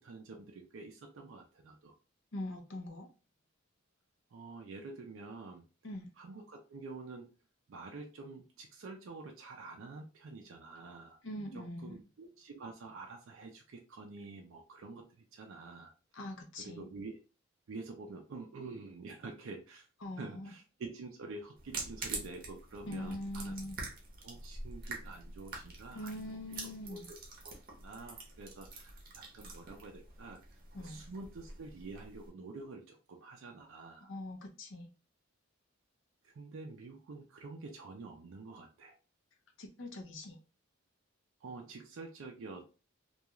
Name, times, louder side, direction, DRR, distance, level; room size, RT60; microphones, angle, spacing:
voice 1, 0.0-1.9 4.3-5.7 6.2-7.3 7.7-11.2 11.5-15.9 16.6-17.2 17.7-19.9 20.2-23.5 24.2-26.4 26.8-27.2 27.7-34.1 36.2-39.0 41.4-42.6, right 3 dB, 70° right, 2 dB, 0.4 m, -48 dB
voice 2, 2.3-3.1 5.8-6.1 11.2-11.9 16.1-16.9 20.0-20.5 22.9-23.8 25.9-27.1 30.7-31.0 34.1-34.9 39.6-40.4, left 1 dB, 60° left, 3 dB, 0.6 m, -42 dB
sound 1, 21.6-32.3, right 3 dB, 45° right, 0.8 m, -46 dB
2.3 x 2.3 x 2.9 m, 0.33 s
head